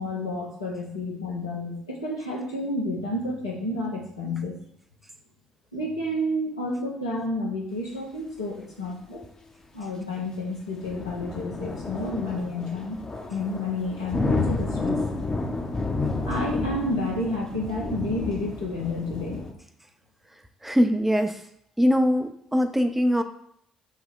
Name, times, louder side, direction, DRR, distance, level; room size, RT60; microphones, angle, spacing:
voice 1, 0.0-4.5 5.7-9.2 9.7-13.0 13.3-15.0 16.3-19.4, left 1 dB, 90° left, -4 dB, 0.9 m, -30 dB
sound 1, 10.8-19.5, left 3 dB, 25° left, 0.8 m, -30 dB
voice 2, 20.6-21.4 21.8-23.2, equal, 10° right, 7 dB, 0.5 m, -22 dB
6.0 x 2.3 x 3.6 m, 0.69 s
figure-of-eight pair, 50°, 2 cm